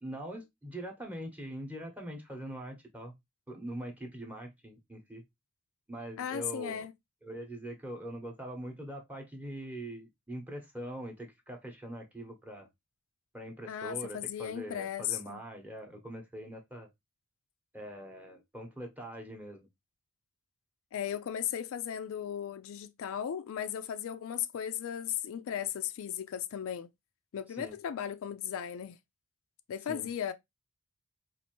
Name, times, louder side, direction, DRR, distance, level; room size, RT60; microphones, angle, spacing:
voice 1, 0.0-3.1 3.5-5.2 5.9-6.9 7.2-12.7 13.3-16.9 17.7-19.7 27.6-27.7 29.9-30.1, right 1 dB, 5° right, 0.9 m, -43 dB
voice 2, 6.2-6.9 13.7-15.4 20.9-26.9 27.3-29.0 29.7-30.3, left 9 dB, 65° left, 0.3 m, -36 dB
4.2 x 2.5 x 2.9 m
head